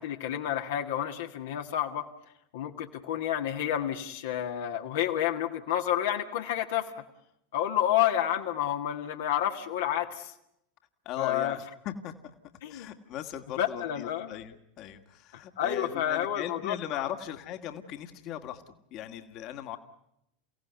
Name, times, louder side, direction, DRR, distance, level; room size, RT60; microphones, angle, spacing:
voice 1, 0.0-2.0 2.5-6.9 7.5-10.3 11.2-11.6 12.6-12.9 13.6-14.3 15.3-17.1, left 11 dB, 65° left, 3 dB, 1.8 m, -30 dB
voice 2, 11.1-12.3 12.7-19.8, left 10 dB, 45° left, 8 dB, 2.0 m, -39 dB
29.5 x 17.0 x 9.4 m, 0.81 s
figure-of-eight pair, 80°, 0 cm